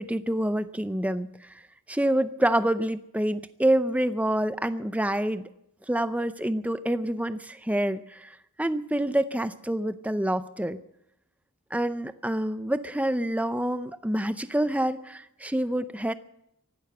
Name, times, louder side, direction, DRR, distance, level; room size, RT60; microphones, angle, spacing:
voice 1, 0.0-1.5 1.9-5.5 5.9-10.8 11.7-16.1, right 1 dB, 5° right, 12 dB, 0.5 m, -27 dB
15.5 x 12.0 x 7.9 m, 0.80 s
head